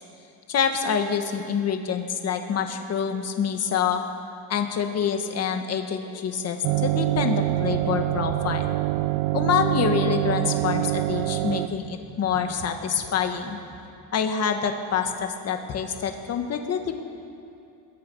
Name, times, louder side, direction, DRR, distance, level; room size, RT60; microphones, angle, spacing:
voice 1, 0.5-4.0 4.5-8.7 9.3-13.6 14.1-17.0, left 7 dB, 35° left, 5 dB, 1.8 m, -26 dB
sound 1, 6.6-11.7, right 18 dB, 80° right, 0.8 m, -25 dB
sound 2, 7.2-13.8, right 4 dB, 60° right, 5.9 m, -43 dB
26.5 x 21.0 x 5.6 m, 2.6 s
cardioid pair, 170°, 42 cm